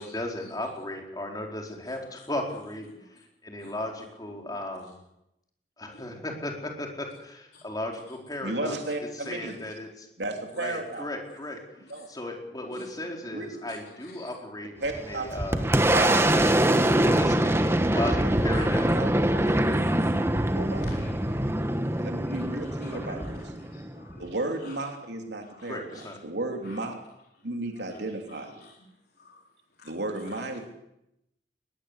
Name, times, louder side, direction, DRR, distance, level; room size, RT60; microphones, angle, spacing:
voice 1, 0.0-5.0 5.8-8.8 9.1-10.1 10.6-11.6 12.1-15.7 16.1-16.5 16.8-19.0 22.9-23.2 25.6-26.2, left 1 dB, 20° left, 1 dB, 4.5 m, -36 dB
voice 2, 8.4-9.6 10.2-11.1 11.9-12.1 13.3-13.4 14.8-15.3 15.9-16.3 18.2-18.3 18.6-18.7 18.9-19.6 20.5-20.9 22.0-23.5 24.2-25.9 26.2-27.0 27.4-28.6 29.8-30.7, right 2 dB, 75° right, 3 dB, 3.2 m, -33 dB
voice 3, 12.6-13.1 13.6-14.3 18.5-18.8 19.0-19.2 19.5-20.3 20.7-21.3 22.2-24.3 24.6-24.7 25.4-26.4 26.6-26.8 27.8-28.0 28.3-28.8 29.2-29.4 29.8-29.9 30.2-30.4, left 2 dB, 60° left, -3 dB, 4.4 m, -51 dB
Boom, 14.9-24.3, right 1 dB, 15° right, 1.2 m, -24 dB
21.0 x 20.0 x 8.3 m, 0.85 s
head